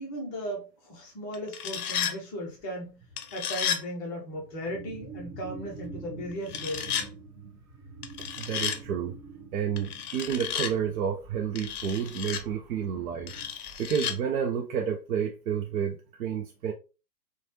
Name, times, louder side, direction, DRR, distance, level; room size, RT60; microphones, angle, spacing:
voice 1, 0.0-3.0 3.3-7.0, equal, 15° left, 0.6 m, -37 dB
sound 1, 1.3-2.1 3.2-3.8 6.5-7.1 8.0-8.8 9.8-10.7 11.5-12.4 13.3-14.1, left 8 dB, 60° left, 0.6 m, -32 dB
sound 2, 2.5-2.6 2.9-3.3 4.3-14.2, right 3 dB, 30° right, 1.0 m, -47 dB
voice 2, 8.4-9.2 9.5-13.3 13.8-16.7, right 8 dB, 60° right, 0.5 m, -30 dB
3.1 x 2.2 x 2.7 m
figure-of-eight pair, 115°, 50 cm